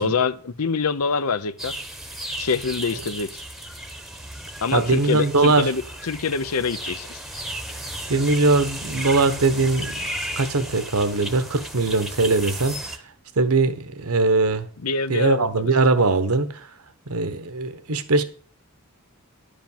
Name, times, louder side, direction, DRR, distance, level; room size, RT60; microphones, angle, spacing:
voice 1, 0.0-1.7 2.4-3.4 4.6-7.2 14.8-15.6, left 4 dB, 75° left, 0.7 m, -25 dB
sound 1, 1.6-13.0, right 1 dB, ahead, 0.9 m, -34 dB
voice 2, 4.7-5.7 8.1-10.1 10.4-13.0 13.4-14.7 15.1-16.7 17.1-18.2, right 3 dB, 75° right, 1.1 m, -21 dB
10.5 x 5.2 x 7.2 m
head